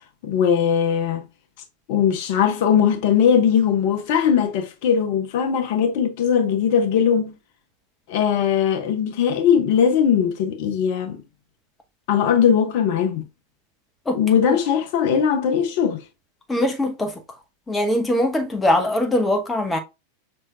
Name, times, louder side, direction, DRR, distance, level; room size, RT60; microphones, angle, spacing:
voice 1, 0.2-1.2 1.9-7.3 8.1-11.2 12.1-13.2 14.1-16.0, left 8 dB, 50° left, 1.0 m, -19 dB
voice 2, 16.5-17.2 17.7-19.8, left 1 dB, 10° left, 1.0 m, -21 dB
5.7 x 3.3 x 2.3 m
figure-of-eight pair, 90°, 0 cm